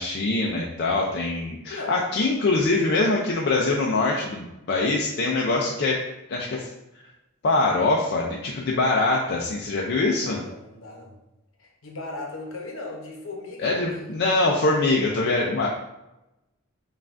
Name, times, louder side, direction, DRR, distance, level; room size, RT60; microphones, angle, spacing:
voice 1, 0.0-6.0 6.3-6.7 7.4-10.4 13.6-15.7, left 2 dB, 55° left, -2 dB, 0.4 m, -23 dB
voice 2, 1.7-2.0 10.2-11.2 11.6-14.2, left 2 dB, 70° left, 0 dB, 0.8 m, -37 dB
5.4 x 2.4 x 2.5 m, 0.94 s
head